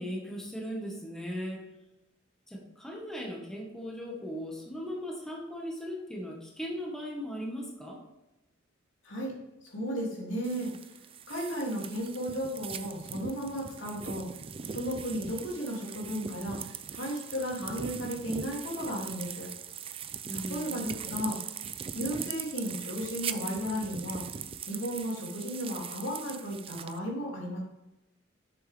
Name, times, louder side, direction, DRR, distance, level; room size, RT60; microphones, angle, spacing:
voice 1, 0.0-1.6 2.5-8.0 20.2-20.8, equal, 5° left, -2 dB, 1.7 m, -38 dB
voice 2, 9.6-10.9 11.3-14.2 14.7-19.5 20.3-21.4 21.9-24.2 24.7-27.6, equal, 85° left, -3 dB, 3.1 m, -34 dB
sound 1, 10.4-27.0, right 7 dB, 30° right, 0.4 m, -40 dB
7.4 x 7.2 x 3.6 m, 0.96 s
head